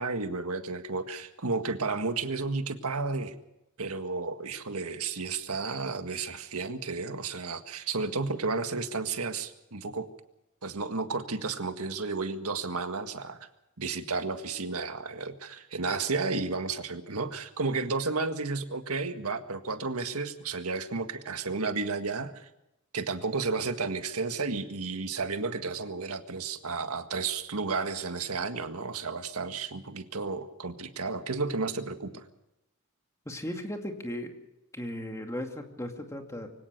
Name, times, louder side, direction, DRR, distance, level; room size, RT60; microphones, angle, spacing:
voice 1, 0.0-3.4 3.8-10.1 10.6-13.4 13.8-22.5 22.9-32.2, right 4 dB, 85° right, 8 dB, 1.8 m, -32 dB
voice 2, 33.3-34.3 34.7-36.5, left 1 dB, 15° left, 4 dB, 2.5 m, -36 dB
24.0 x 17.5 x 6.7 m, 0.88 s
head